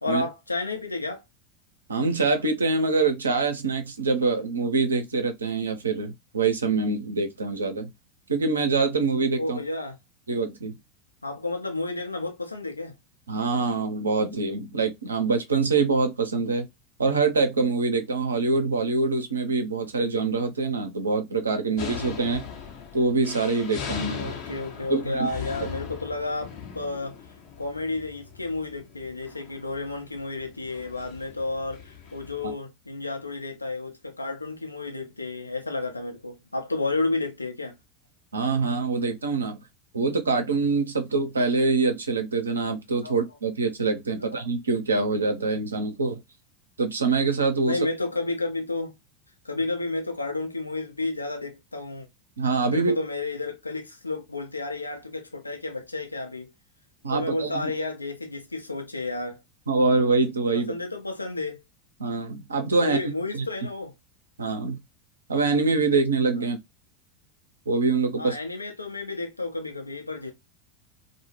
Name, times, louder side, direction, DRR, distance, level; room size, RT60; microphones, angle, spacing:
voice 1, 0.0-1.2 9.4-10.0 11.2-12.9 24.1-27.2 27.6-37.7 43.0-43.2 44.1-44.4 47.7-48.9 49.4-52.1 52.7-56.5 57.1-59.4 60.5-61.6 62.8-63.9 66.4-66.5 68.2-70.3, left 2 dB, 90° left, 0.6 m, -31 dB
voice 2, 1.9-7.9 8.3-9.6 10.3-10.8 13.3-16.7 17.0-22.4 22.9-24.3 24.9-25.3 38.3-39.6 39.9-46.2 46.8-47.8 52.4-52.9 57.0-57.7 59.7-60.7 62.0-63.0 63.3-63.4 64.4-64.8 65.3-66.6 67.7-68.4, right 4 dB, 80° right, 0.5 m, -25 dB
sound 1, 21.8-32.5, left 6 dB, 60° left, 0.7 m, -40 dB
2.1 x 2.0 x 3.0 m
figure-of-eight pair, 80°, 0 cm